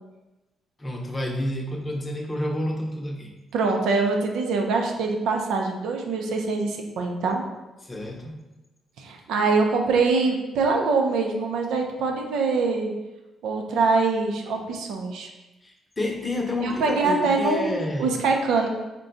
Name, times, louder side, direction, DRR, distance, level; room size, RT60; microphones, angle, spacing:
voice 1, 0.8-3.3 7.8-8.5 15.6-18.1, left 1 dB, 25° left, 0 dB, 0.7 m, -29 dB
voice 2, 3.5-7.4 9.0-12.9 13.4-15.3 16.6-18.7, right 4 dB, 80° right, 2 dB, 0.5 m, -24 dB
3.7 x 2.3 x 3.9 m, 1.1 s
cardioid pair, 90°, 0 cm